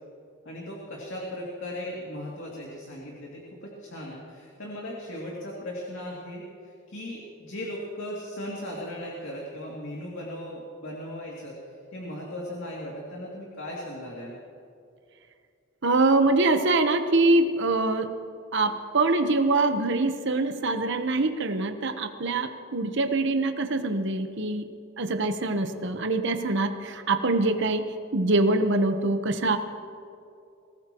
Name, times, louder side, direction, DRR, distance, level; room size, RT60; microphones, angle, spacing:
voice 1, 0.4-14.4, left 1 dB, 60° left, -4 dB, 2.6 m, -37 dB
voice 2, 15.8-18.2 18.5-24.7 25.0-27.9 28.1-29.6, right 2 dB, 60° right, 7 dB, 1.1 m, -24 dB
23.0 x 18.5 x 3.1 m, 2.5 s
head